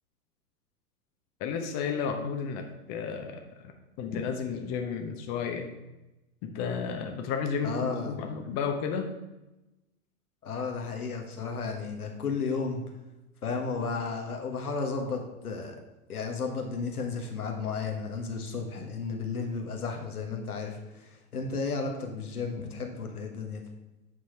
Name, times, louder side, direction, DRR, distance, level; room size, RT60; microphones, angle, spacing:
voice 1, 1.4-3.4 4.0-5.7 6.4-9.1, left 6 dB, 35° left, 4 dB, 1.0 m, -32 dB
voice 2, 7.6-8.2 10.4-12.8 13.4-15.8 16.1-23.6, left 4 dB, 80° left, 2 dB, 1.5 m, -33 dB
8.5 x 4.7 x 4.5 m, 1.0 s
figure-of-eight pair, 95°, 44 cm